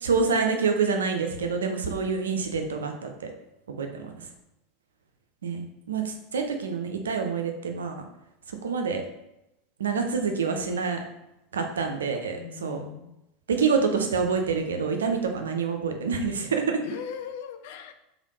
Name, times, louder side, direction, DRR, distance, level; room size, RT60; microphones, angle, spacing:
voice 1, 0.0-3.1 3.8-4.1 5.4-8.0 8.6-9.0 9.8-11.0 11.5-12.8 13.5-16.8, right 5 dB, 75° right, 4 dB, 0.4 m, -27 dB
voice 2, 12.4-13.2 16.8-17.9, left 8 dB, 60° left, 8 dB, 0.3 m, -39 dB
3.3 x 2.6 x 2.7 m, 0.90 s
figure-of-eight pair, 80°, 0 cm